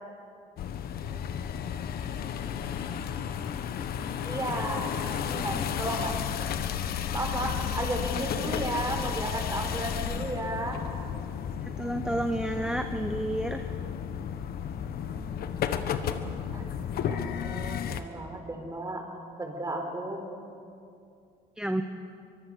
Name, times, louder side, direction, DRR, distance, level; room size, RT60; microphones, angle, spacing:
sound 1, 0.6-18.0, left 8 dB, 65° left, 1.4 m, -33 dB
voice 1, 4.2-6.2 7.1-10.8 14.7-15.3 16.5-19.1 19.4-20.3, right 1 dB, 20° right, 3 dB, 4.4 m, -34 dB
voice 2, 11.8-13.7 21.6-21.8, right 1 dB, 5° right, 6 dB, 1.0 m, -30 dB
24.5 x 22.5 x 6.6 m, 2.5 s
cardioid pair, 110°, 17 cm